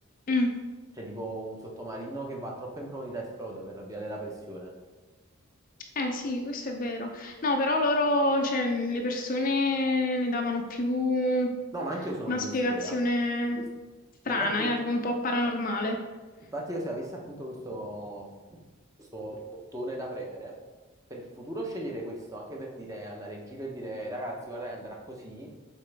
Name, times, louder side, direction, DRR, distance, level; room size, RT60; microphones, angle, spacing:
voice 1, 1.0-4.7 11.7-12.9 13.6-13.7 14.4-14.7 16.5-18.3 19.0-20.5 21.1-25.5, right 1 dB, 15° right, -1 dB, 0.7 m, -37 dB
voice 2, 6.0-11.5 12.3-13.6 14.2-16.0, left 2 dB, 40° left, 3 dB, 0.5 m, -27 dB
7.4 x 4.1 x 3.4 m, 1.3 s
head